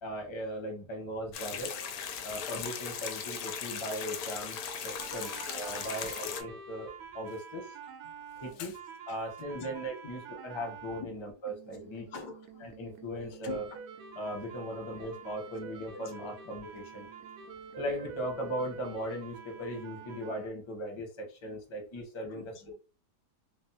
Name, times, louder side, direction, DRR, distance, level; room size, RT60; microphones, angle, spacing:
voice 1, 0.0-1.7 2.2-7.7 8.4-8.7 9.1-12.1 12.6-13.6 14.2-17.1 17.8-22.4, equal, 35° left, 0.5 m, -38 dB
sound 1, 1.3-6.4, left 7 dB, 70° left, 1.0 m, -38 dB
voice 2, 4.9-6.1 8.0-8.8 9.1-9.7 11.0-11.1 12.0-12.7 13.3-13.8 14.7-14.8 15.9-16.4 20.3-20.4 21.4-21.6 22.3-22.7, left 5 dB, 90° left, 1.3 m, -47 dB
sound 2, 5.0-11.0 11.5-20.5, right 7 dB, 80° right, 1.2 m, -47 dB
3.3 x 2.0 x 2.7 m
omnidirectional pair, 1.7 m